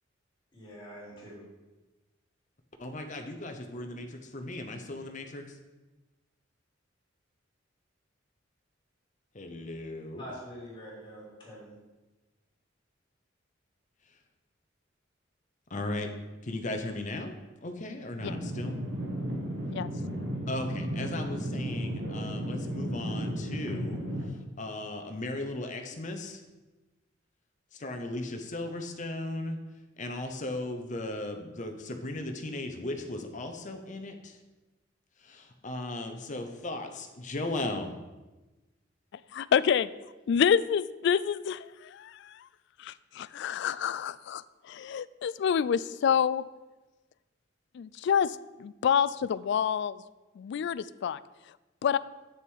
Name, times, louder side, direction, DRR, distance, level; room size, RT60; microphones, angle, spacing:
voice 1, 0.5-1.3 10.2-11.7, equal, 25° left, -6 dB, 3.3 m, -45 dB
voice 2, 2.8-5.6 9.3-10.2 15.7-16.1 16.4-17.3 17.6-18.8 20.5-24.0 24.3-26.4 27.7-29.6 30.0-34.4 35.2-37.9, left 2 dB, 40° left, 5 dB, 0.8 m, -37 dB
sound 1, 18.2-24.3, equal, 70° right, 1.7 m, -34 dB
voice 3, 39.3-39.9 40.3-42.5 42.8-46.4 47.7-50.0 50.4-51.2 51.8-52.0, left 7 dB, 60° left, 17 dB, 0.3 m, -28 dB
8.0 x 6.7 x 4.6 m, 1.1 s
head